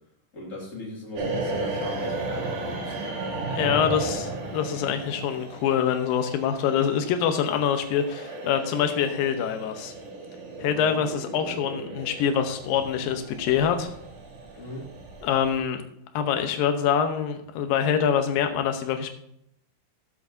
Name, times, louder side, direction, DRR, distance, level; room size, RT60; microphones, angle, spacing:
voice 1, 0.3-3.0 10.7-11.0 14.6-14.9, left 1 dB, 25° left, -3 dB, 2.3 m, -38 dB
sound 1, 1.1-15.6, right 2 dB, 70° right, 3.4 m, -35 dB
voice 2, 3.5-9.9 10.6-13.9 15.2-15.8 16.1-19.1, left 8 dB, 75° left, 7 dB, 2.5 m, -25 dB
15.0 x 7.8 x 2.7 m, 0.73 s
omnidirectional pair, 4.6 m